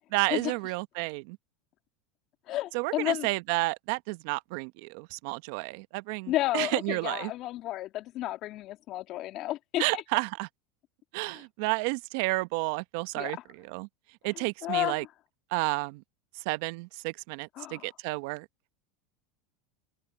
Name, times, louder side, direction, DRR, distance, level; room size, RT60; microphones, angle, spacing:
voice 1, 0.1-1.4 2.7-7.3 9.8-10.5 11.1-13.9 14.2-15.0 15.5-16.0 16.4-18.4, right 24 dB, 65° right, 1.0 m, -31 dB
voice 2, 2.5-3.3 6.3-10.0 11.3-11.4 13.2-13.4 14.4-15.1 17.6-17.9, left 15 dB, 50° left, 1.9 m, -32 dB
open air
hypercardioid pair, 95°, 0 cm